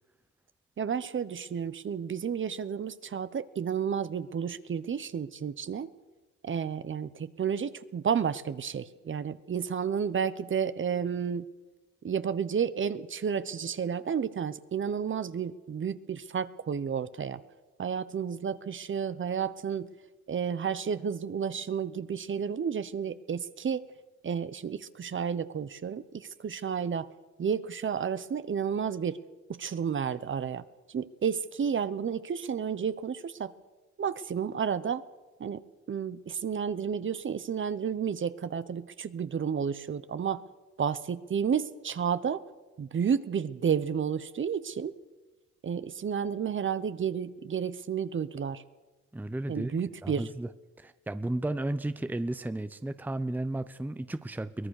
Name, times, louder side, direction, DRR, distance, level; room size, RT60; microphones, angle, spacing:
voice 1, 0.8-5.9 6.4-11.5 12.0-17.4 17.8-19.9 20.3-23.9 24.2-27.1 27.4-29.2 29.5-33.5 34.0-35.0 35.4-35.6 35.9-40.4 40.8-42.4 42.8-44.9 45.6-48.6 49.5-50.3, right 7 dB, 40° right, 14 dB, 1.0 m, -31 dB
voice 2, 49.1-50.5 50.8-54.7, right 1 dB, 5° right, 13 dB, 0.8 m, -34 dB
23.5 x 18.0 x 6.6 m, 1.2 s
cardioid pair, 90°, 30 cm